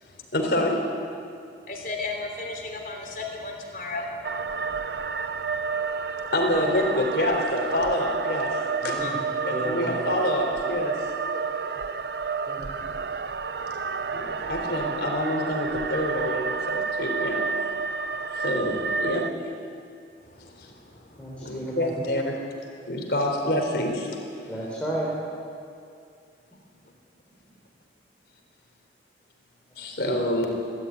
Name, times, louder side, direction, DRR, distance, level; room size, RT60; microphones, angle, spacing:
voice 1, 0.3-0.8 6.3-9.0 9.4-11.0 11.3-11.4 14.1-17.4 18.4-19.3 21.4-22.4 22.9-24.1 29.8-30.5, left 1 dB, 65° left, 2 dB, 3.7 m, -27 dB
voice 2, 1.7-4.1 9.0-9.1 13.9-14.0 20.4-20.5 21.4-21.6, left 3 dB, 50° left, 2 dB, 3.3 m, -34 dB
sound 1, 4.2-19.3, right 5 dB, 65° right, 0.6 m, -30 dB
voice 3, 8.8-9.2 9.5-10.0 12.5-12.9 21.2-21.9 24.5-25.1 29.8-29.9, right 1 dB, 5° left, -7 dB, 3.9 m, -33 dB
23.5 x 13.0 x 9.4 m, 2.4 s
head